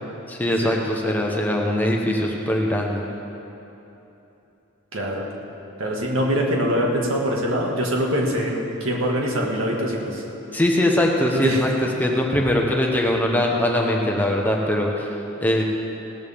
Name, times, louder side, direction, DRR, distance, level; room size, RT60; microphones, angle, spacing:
voice 1, 0.3-3.0 10.5-15.1 15.4-15.6, left 1 dB, 10° left, -1 dB, 1.0 m, -21 dB
voice 2, 4.9-5.3 5.8-10.2 11.3-11.6, equal, 65° right, -1 dB, 2.0 m, -23 dB
18.0 x 14.0 x 3.6 m, 3.0 s
head